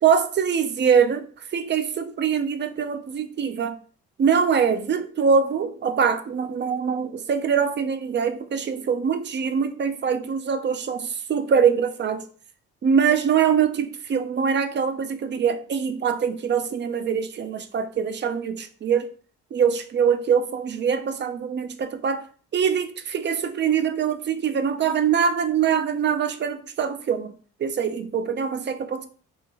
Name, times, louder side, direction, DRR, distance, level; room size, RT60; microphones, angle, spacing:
voice 1, 0.0-3.8 4.2-12.2 12.8-19.1 19.5-22.3 22.5-27.3 27.6-29.0, right 7 dB, 35° right, 0.4 m, -23 dB
3.6 x 2.2 x 2.7 m
cardioid pair, 90°, 30 cm